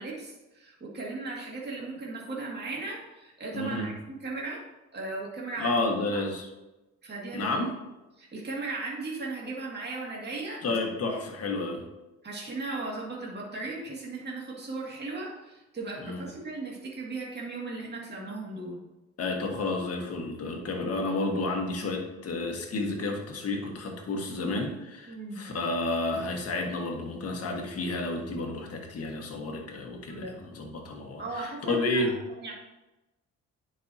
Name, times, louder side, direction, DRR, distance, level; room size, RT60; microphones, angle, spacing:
voice 1, 0.0-4.6 4.9-5.8 6.1-6.2 7.0-7.5 8.2-10.8 12.2-18.8 25.1-25.4 30.1-30.4 31.2-32.1 32.4-32.5, right 3 dB, 35° right, -3 dB, 2.2 m, -37 dB
voice 2, 3.5-3.9 5.6-6.5 7.3-7.8 10.6-11.9 16.0-16.2 19.2-32.2, left 2 dB, 55° left, 1 dB, 1.6 m, -31 dB
10.5 x 5.6 x 2.8 m, 1.0 s
cardioid pair, 90°, 30 cm